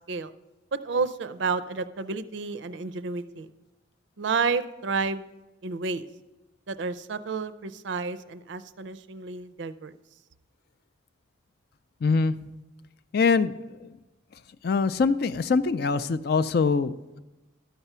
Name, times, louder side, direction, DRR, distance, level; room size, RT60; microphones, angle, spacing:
voice 1, 0.7-3.5 4.2-5.2 5.6-6.1 6.7-9.9, right 4 dB, 65° right, 13 dB, 0.5 m, -30 dB
voice 2, 12.0-12.4 13.1-13.9 14.6-17.2, left 4 dB, 55° left, 14 dB, 0.4 m, -24 dB
12.5 x 5.9 x 5.5 m, 1.1 s
head